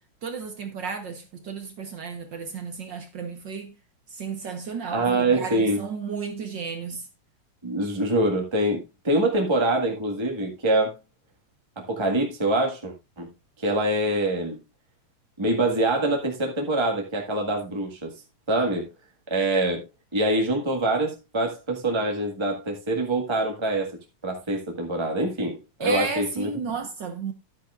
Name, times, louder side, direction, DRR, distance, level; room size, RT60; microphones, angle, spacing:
voice 1, 0.2-3.7 4.1-7.1 25.8-27.3, right 5 dB, 65° right, 1.1 m, -33 dB
voice 2, 4.9-5.8 7.6-11.0 11.7-13.3 13.6-14.6 15.4-18.1 18.5-18.9 19.3-19.9 20.1-23.9 24.2-26.5, right 1 dB, 15° right, 0.8 m, -25 dB
12.0 x 9.6 x 2.4 m
omnidirectional pair, 3.5 m